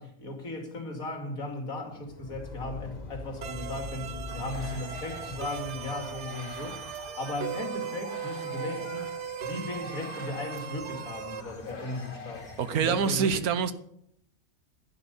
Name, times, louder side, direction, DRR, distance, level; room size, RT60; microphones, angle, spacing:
voice 1, 0.0-6.8 7.2-9.0 9.4-13.4, left 2 dB, 70° left, 3.0 m, -36 dB
sound 1, 1.9-7.1, left 2 dB, 30° left, 1.3 m, -42 dB
sound 2, 3.4-11.4, right 9 dB, 60° right, 0.9 m, -38 dB
sound 3, 4.3-13.1, left 3 dB, 85° left, 2.9 m, -46 dB
voice 2, 12.6-13.7, right 6 dB, 85° right, 1.5 m, -26 dB
10.5 x 10.5 x 8.2 m
omnidirectional pair, 1.5 m